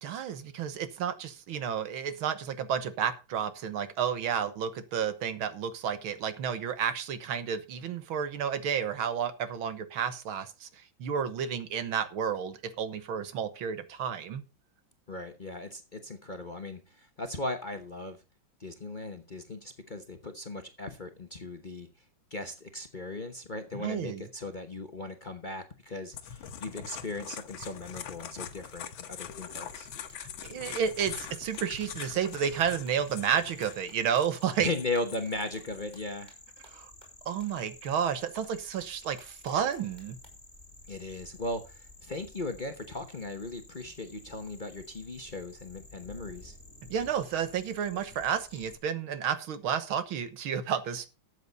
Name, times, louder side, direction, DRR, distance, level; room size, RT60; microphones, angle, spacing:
voice 1, 0.0-14.4 23.7-24.3 30.2-34.7 36.7-36.9 37.3-40.2 46.9-51.1, right 8 dB, 85° right, 12 dB, 2.0 m, -31 dB
voice 2, 15.1-18.2 18.6-21.9 22.3-29.9 34.6-36.3 40.9-46.5, left 2 dB, 30° left, 6 dB, 0.9 m, -37 dB
sound 1, 26.1-33.7 34.2-36.0, left 8 dB, 75° left, 1.8 m, -43 dB
sound 2, 29.3-48.8, left 2 dB, 15° left, 2.5 m, -52 dB
sound 3, 30.1-30.2 30.4-35.3 35.6-35.7 35.9-36.0 36.3-36.4 36.6-36.7 37.0-37.1 37.4-37.5 37.8-37.9 38.3-38.4 38.8-38.9 39.2-40.3, right 1 dB, 10° right, 5.4 m, -56 dB
13.0 x 8.2 x 4.1 m, 0.30 s
omnidirectional pair, 2.2 m